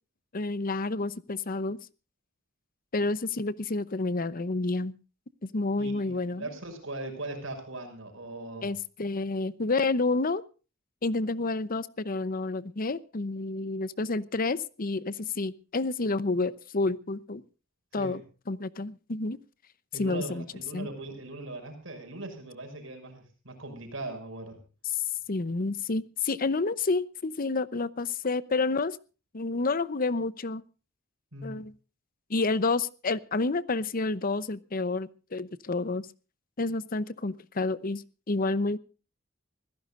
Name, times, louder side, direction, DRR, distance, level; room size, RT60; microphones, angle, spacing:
voice 1, 0.3-1.8 2.9-4.9 5.4-6.5 8.6-10.4 11.0-17.4 17.9-18.2 18.5-19.4 20.0-20.5 20.7-20.9 25.3-29.0 29.3-30.6 31.4-31.7 32.3-36.1 36.6-38.8, left 3 dB, 45° left, 17 dB, 0.8 m, -29 dB
voice 2, 5.8-8.7 17.9-18.2 19.9-24.6 31.3-31.6, right 2 dB, 75° right, 5 dB, 6.1 m, -40 dB
25.5 x 16.0 x 2.5 m, 0.35 s
head